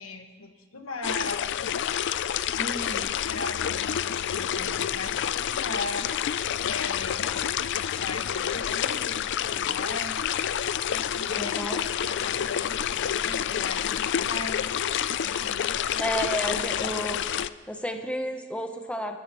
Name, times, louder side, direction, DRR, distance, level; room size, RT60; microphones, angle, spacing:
voice 1, 0.0-1.4 2.5-6.1 6.6-7.5 7.9-10.2 10.9-14.7 15.2-16.1 16.5-16.6, left 3 dB, 75° left, 4 dB, 1.5 m, -39 dB
sound 1, 1.0-17.5, left 9 dB, 55° left, 0.4 m, -28 dB
voice 2, 2.6-3.1 11.3-11.8 16.0-17.2 17.7-19.2, equal, 5° left, 4 dB, 0.9 m, -31 dB
30.0 x 13.5 x 3.1 m, 1.5 s
head